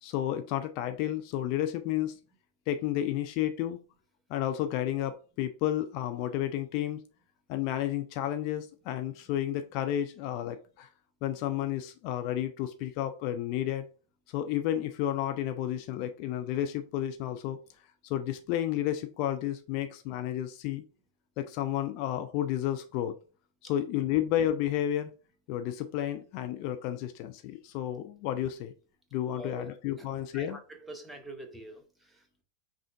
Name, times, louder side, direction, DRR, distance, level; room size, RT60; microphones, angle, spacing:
voice 1, 0.0-2.2 2.7-3.8 4.3-7.0 7.5-10.9 11.2-13.9 14.3-17.6 18.0-20.8 21.4-23.2 23.6-25.1 25.5-28.7 29.1-30.6, left 12 dB, 45° left, 0.4 m, -31 dB
voice 2, 29.3-29.7 30.0-30.1 30.3-32.4, right 1 dB, 5° right, 0.9 m, -45 dB
5.5 x 2.5 x 3.4 m
figure-of-eight pair, 90°, 0 cm